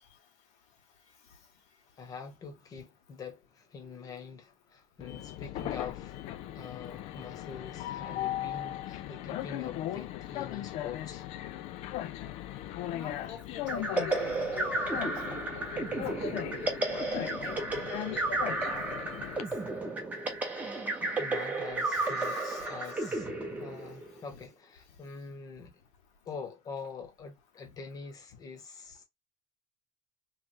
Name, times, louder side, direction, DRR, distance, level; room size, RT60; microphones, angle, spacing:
voice 1, 2.0-6.2 6.5-11.2 21.0-23.3 23.6-25.7 26.3-29.0, left 5 dB, 25° left, 1.0 m, -44 dB
Train, 5.0-19.4, left 13 dB, 50° left, 0.4 m, -38 dB
voice 2, 12.9-18.0 18.3-19.4 21.9-23.1 24.3-24.4, left 6 dB, 80° left, 1.5 m, -46 dB
sound 1, 13.7-24.3, right 2 dB, 10° right, 0.8 m, -33 dB
3.2 x 3.2 x 3.0 m
cardioid pair, 175°, 14 cm